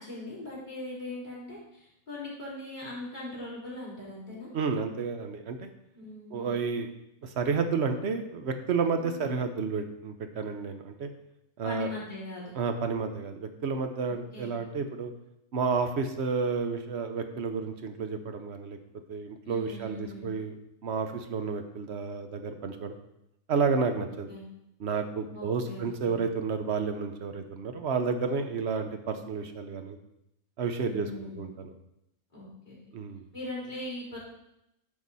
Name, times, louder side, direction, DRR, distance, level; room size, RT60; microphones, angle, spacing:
voice 1, 0.0-4.5 6.0-6.7 9.0-9.4 11.6-12.5 14.1-14.6 19.4-20.3 24.0-24.5 25.3-26.2 30.8-31.6 32.3-32.8 33.3-34.2, left 2 dB, 30° left, -8 dB, 3.3 m, -41 dB
voice 2, 4.5-5.7 6.3-6.9 7.2-11.1 11.6-11.9 12.6-15.1 15.5-18.8 19.1-20.6 20.8-22.9 23.5-24.3 24.8-30.0 30.6-31.1 31.4-31.5 32.9-33.2, right 5 dB, 55° right, 7 dB, 1.0 m, -31 dB
9.7 x 5.6 x 4.1 m, 0.83 s
omnidirectional pair, 1.5 m